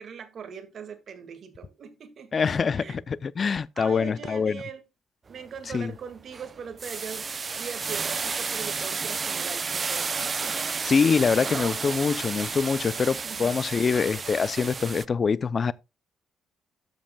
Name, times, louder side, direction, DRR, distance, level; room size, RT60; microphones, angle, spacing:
voice 1, 0.0-2.3 2.8-3.0 3.8-4.8 5.3-10.7 13.1-13.6, right 6 dB, 55° right, 1.9 m, -41 dB
voice 2, 2.3-4.6 5.7-5.9 10.8-15.7, left 5 dB, 40° left, 0.4 m, -24 dB
sound 1, 5.3-5.6 6.0-15.0, right 5 dB, 35° right, 0.4 m, -32 dB
12.5 x 7.7 x 2.2 m
cardioid pair, 90°, 0 cm